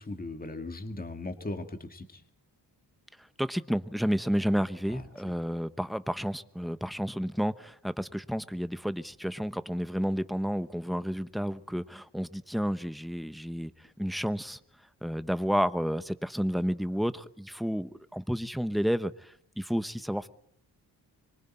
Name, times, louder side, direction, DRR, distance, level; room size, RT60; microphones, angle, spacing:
voice 1, 0.0-2.2 4.9-5.0, left 2 dB, 20° left, 2.0 m, -38 dB
voice 2, 3.4-13.7 14.0-14.6 15.0-20.3, equal, ahead, 1.0 m, -31 dB
25.5 x 23.5 x 4.4 m
cardioid pair, 100°, 41 cm